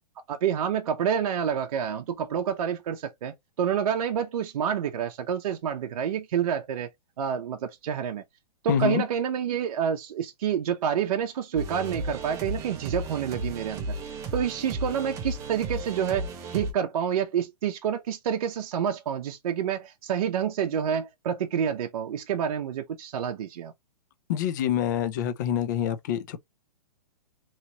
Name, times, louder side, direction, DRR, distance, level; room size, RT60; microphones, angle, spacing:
voice 1, 0.3-6.9 7.2-8.2 8.6-23.7, right 8 dB, 60° right, 0.6 m, -28 dB
voice 2, 8.7-9.0 24.3-26.4, left 9 dB, 30° left, 0.4 m, -26 dB
sound 1, 11.6-16.7, right 2 dB, 15° right, 0.6 m, -34 dB
3.1 x 2.9 x 2.7 m
hypercardioid pair, 160°, 21 cm